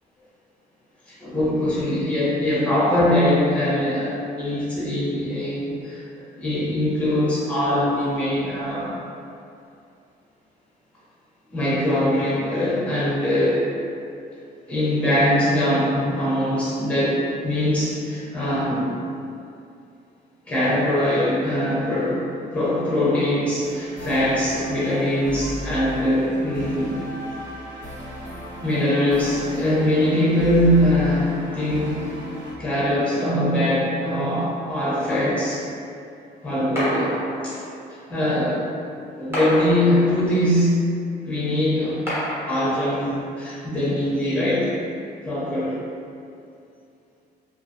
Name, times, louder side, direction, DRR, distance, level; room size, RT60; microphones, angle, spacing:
voice 1, 1.1-8.9 11.5-13.7 14.7-18.9 20.5-22.2 22.5-27.0 28.6-32.0 32.6-35.6 36.4-37.1 37.4-37.6 38.1-38.6 39.2-40.8 41.2-42.0 42.5-44.7 45.2-45.8, left 1 dB, 5° left, -8 dB, 0.8 m, -22 dB
sound 1, 23.6-32.5, equal, 90° right, 1.2 m, -36 dB
sound 2, 36.8-37.9 39.3-40.5 42.1-43.1, equal, 15° right, 1.0 m, -29 dB
2.4 x 2.3 x 2.6 m, 2.5 s
cardioid pair, 125°, 18 cm